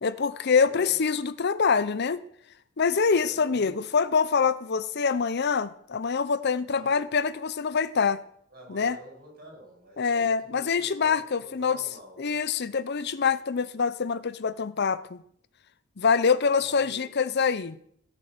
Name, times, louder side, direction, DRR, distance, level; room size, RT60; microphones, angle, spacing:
voice 1, 0.0-2.2 2.8-8.2 8.7-9.0 10.0-11.8 12.2-15.2 16.0-17.8, left 5 dB, 55° left, 0.6 m, -25 dB
voice 2, 0.6-1.0 3.1-3.8 6.7-7.0 8.5-11.1 11.4-12.3 16.4-17.0, right 1 dB, 45° right, 7.8 m, -48 dB
17.0 x 7.6 x 8.0 m
head